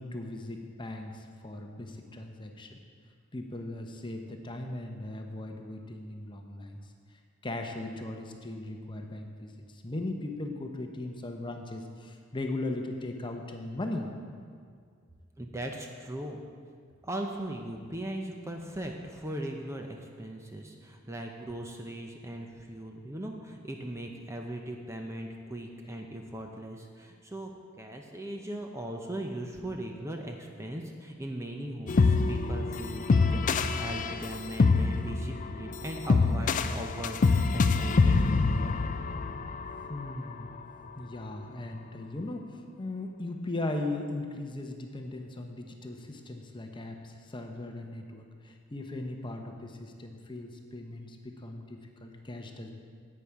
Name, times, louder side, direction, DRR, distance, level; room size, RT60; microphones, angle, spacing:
voice 1, 0.0-2.8 3.3-6.8 7.4-14.1 39.9-40.6 40.9-52.7, left 2 dB, 25° left, 3 dB, 0.8 m, -38 dB
voice 2, 15.4-16.4 17.0-27.5 27.8-38.3, right 1 dB, 15° right, 2 dB, 0.6 m, -39 dB
sound 1, 31.9-40.0, left 4 dB, 40° left, 0.4 m, -25 dB
10.5 x 8.7 x 4.7 m, 2.1 s
head